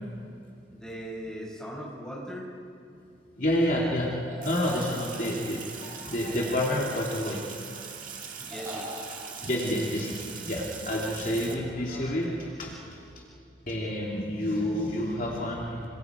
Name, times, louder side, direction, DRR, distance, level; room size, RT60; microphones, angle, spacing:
voice 1, 0.7-2.5 4.9-5.3 8.4-8.9 14.1-14.2, equal, 5° left, -4 dB, 6.3 m, -39 dB
voice 2, 3.4-7.5 9.3-13.2 13.7-15.9, left 1 dB, 45° left, -3 dB, 2.7 m, -29 dB
Zombie moaning, 4.3-5.6 6.3-7.4 8.5-9.3, left 1 dB, 15° right, 3.7 m, -42 dB
Sink (filling or washing), 4.4-11.5, right 6 dB, 45° right, 2.2 m, -41 dB
27.0 x 25.0 x 5.0 m, 2.6 s
head